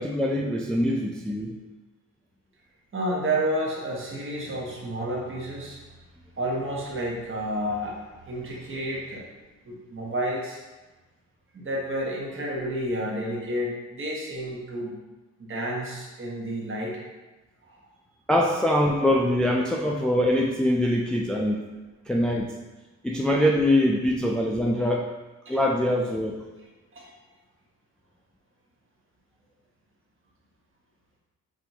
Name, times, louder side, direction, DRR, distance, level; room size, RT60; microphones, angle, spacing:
voice 1, 0.0-1.5 18.3-21.6 22.1-22.5 23.0-25.0 25.5-26.4, left 1 dB, 5° left, -1 dB, 0.3 m, -23 dB
voice 2, 2.9-5.8 6.4-9.3 9.6-10.6 11.5-15.0 15.4-17.0 17.7-17.8 25.4-25.6 26.9-27.1, right 1 dB, 45° right, -3 dB, 1.2 m, -30 dB
6.2 x 2.7 x 2.7 m, 1.2 s
cardioid pair, 90°, 30 cm